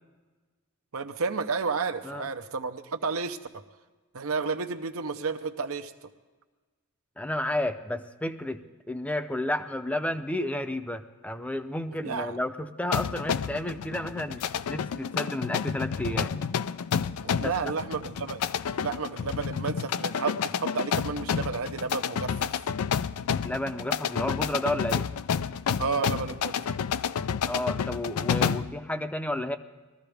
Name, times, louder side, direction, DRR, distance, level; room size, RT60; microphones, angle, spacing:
voice 1, 0.9-3.6 4.1-5.9 11.9-12.3 17.2-18.4 18.7-22.6 25.8-26.7, right 4 dB, 70° right, 8 dB, 0.8 m, -31 dB
voice 2, 7.2-16.3 17.4-17.7 23.4-25.1 27.4-29.6, left 1 dB, 5° left, 8 dB, 0.6 m, -32 dB
sound 1, 12.9-28.8, left 7 dB, 80° left, 0.4 m, -30 dB
20.5 x 14.5 x 3.5 m, 1.3 s
head